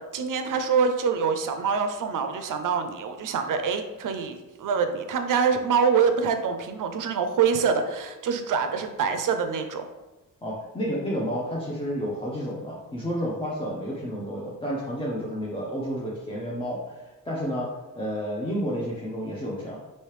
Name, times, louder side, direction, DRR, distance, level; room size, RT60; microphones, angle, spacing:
voice 1, 0.0-9.9, right 6 dB, 70° right, 7 dB, 0.5 m, -25 dB
voice 2, 10.4-17.7 18.0-19.8, equal, 15° left, -5 dB, 0.6 m, -31 dB
3.1 x 2.8 x 3.2 m, 1.1 s
cardioid pair, 85°, 33 cm